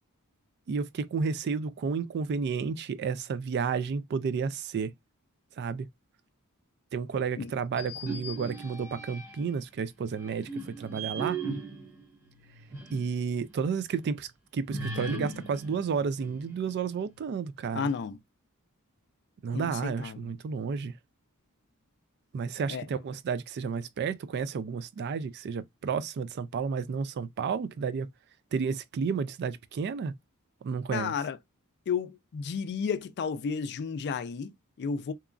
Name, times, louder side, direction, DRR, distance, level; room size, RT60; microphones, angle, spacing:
voice 1, 0.7-4.9 5.6-5.9 6.9-11.4 12.9-17.9 19.4-20.9 22.3-28.1 28.5-30.1 30.6-31.1, right 5 dB, 50° right, 0.3 m, -31 dB
sound 1, 7.7-9.6 10.1-13.1 13.5-13.6 14.7-16.8, right 3 dB, 15° right, 0.8 m, -38 dB
voice 2, 17.7-18.2 19.5-20.3 22.7-22.9 30.9-31.4 31.9-35.1, left 6 dB, 50° left, 0.3 m, -32 dB
2.9 x 2.3 x 2.4 m
head